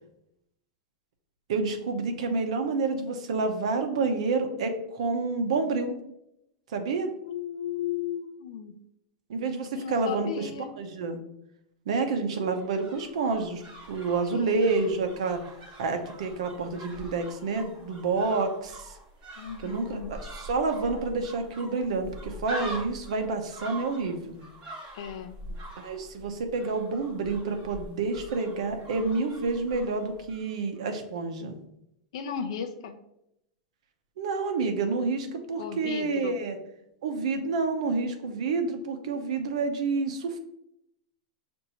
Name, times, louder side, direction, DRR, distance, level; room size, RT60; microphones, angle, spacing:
voice 1, 1.5-5.9 6.7-7.1 9.3-10.5 10.8-11.2 11.9-13.6 13.9-15.4 15.8-19.0 19.6-24.4 25.8-31.6 34.2-36.6 37.0-40.4, right 3 dB, 75° right, 6 dB, 0.8 m, -29 dB
voice 2, 7.2-8.8 9.7-10.8 14.3-15.1 19.4-20.1 24.9-25.4 32.1-33.0 35.6-36.4, left 8 dB, 65° left, 5 dB, 0.4 m, -35 dB
sound 1, 12.3-30.5 30.7-30.8, right 1 dB, 25° right, 1.3 m, -44 dB
6.8 x 2.6 x 2.9 m, 0.80 s
supercardioid pair, 170°, 3 cm